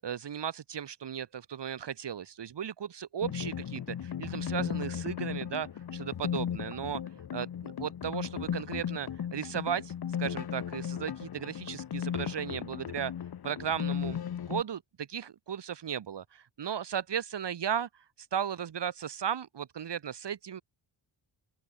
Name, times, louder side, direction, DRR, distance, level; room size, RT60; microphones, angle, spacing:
voice 1, 0.0-7.0 7.3-9.9 10.2-13.1 13.4-14.2 14.5-17.9 18.2-20.6, right 8 dB, 60° right, 2.1 m, -35 dB
sound 1, 3.2-14.6, left 9 dB, 50° left, 1.2 m, -36 dB
open air
cardioid pair, 105°, 48 cm